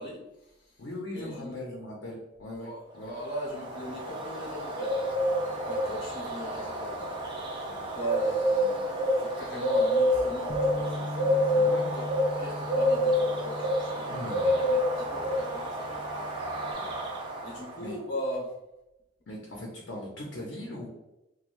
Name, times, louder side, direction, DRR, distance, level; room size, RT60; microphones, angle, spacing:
voice 1, 0.0-0.8 1.1-1.6 2.6-5.2 5.7-7.2 7.7-12.1 12.4-16.3 17.4-18.5, equal, 55° left, -5 dB, 0.9 m, -39 dB
voice 2, 0.8-3.1 11.5-11.9 14.1-14.6 17.8-18.0 19.3-20.9, left 1 dB, 90° left, -3 dB, 0.6 m, -39 dB
Bird, 3.1-17.8, equal, 25° right, 0.6 m, -28 dB
Bass guitar, 10.5-16.7, left 1 dB, 30° left, 0.4 m, -40 dB
3.1 x 2.2 x 2.5 m, 0.93 s
head